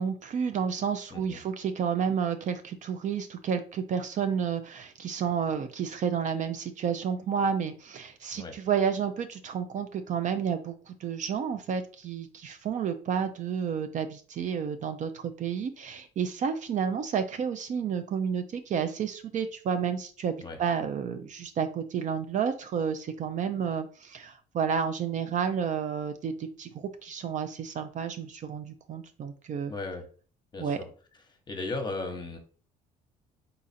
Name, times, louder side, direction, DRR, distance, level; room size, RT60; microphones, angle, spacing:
voice 1, 0.0-20.3 20.6-26.3 26.6-26.7 27.0-29.7 30.6-30.8, right 7 dB, 45° right, 9 dB, 0.5 m, -30 dB
voice 2, 29.7-30.1 30.5-30.9 31.3-32.4, left 3 dB, 25° left, 5 dB, 1.0 m, -36 dB
4.0 x 2.4 x 4.1 m, 0.40 s
cardioid pair, 110°, 17 cm